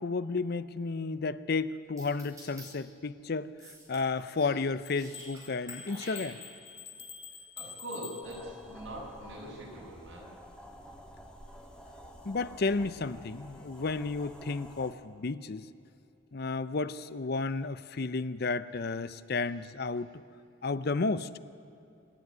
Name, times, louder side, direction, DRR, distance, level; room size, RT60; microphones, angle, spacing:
voice 1, 0.0-3.5 3.9-6.4 12.2-15.7 16.3-20.1 20.6-21.3, left 3 dB, 50° left, 15 dB, 0.6 m, -32 dB
sound 1, 2.0-2.7 3.6-4.6 4.8-5.4 5.7-6.7, right 1 dB, 15° right, 5.0 m, -49 dB
sound 2, 4.8-8.8, left 6 dB, 30° left, 1.7 m, -47 dB
voice 2, 7.3-10.4 19.5-19.7 20.0-20.1, equal, 80° right, -3 dB, 6.9 m, -43 dB
sound 3, 8.2-14.9, equal, 5° left, 1.8 m, -50 dB
25.5 x 11.0 x 9.5 m, 2.7 s
head